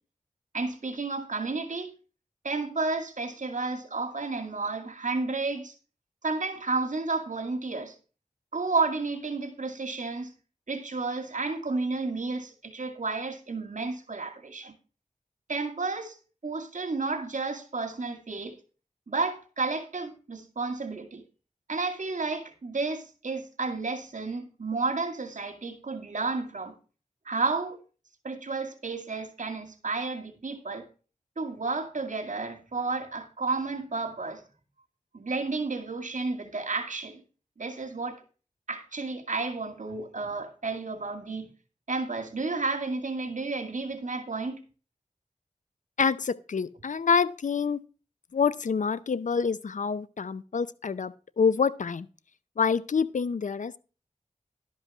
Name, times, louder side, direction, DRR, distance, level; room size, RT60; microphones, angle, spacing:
voice 1, 0.5-1.9 2.4-5.7 6.2-8.0 8.5-10.3 10.7-14.7 15.5-16.2 16.4-18.6 19.1-21.2 21.7-26.7 27.3-27.8 28.2-30.9 31.4-34.4 35.1-37.2 37.6-38.2 38.7-41.5 41.9-44.6, right 3 dB, 70° right, 2.3 m, -31 dB
voice 2, 46.0-47.8 48.3-52.1 52.6-53.8, left 5 dB, 70° left, 0.5 m, -27 dB
12.0 x 5.5 x 6.0 m
cardioid pair, 45°, 13 cm